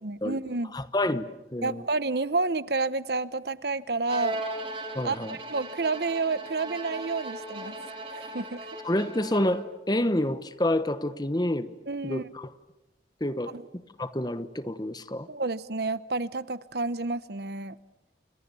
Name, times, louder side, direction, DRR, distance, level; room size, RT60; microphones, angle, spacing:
voice 1, 0.0-0.7 1.6-4.4 5.0-7.7 8.1-8.6 11.9-12.3 13.5-13.6 15.3-17.7, right 3 dB, 60° right, 17 dB, 0.9 m, -30 dB
voice 2, 0.7-1.3 1.5-1.8 4.9-5.4 8.8-11.7 12.0-12.5 13.2-15.3, left 1 dB, 20° left, 14 dB, 1.1 m, -28 dB
Bowed string instrument, 4.1-9.8, right 1 dB, 30° right, 4.1 m, -38 dB
30.0 x 27.5 x 7.0 m, 1.0 s
head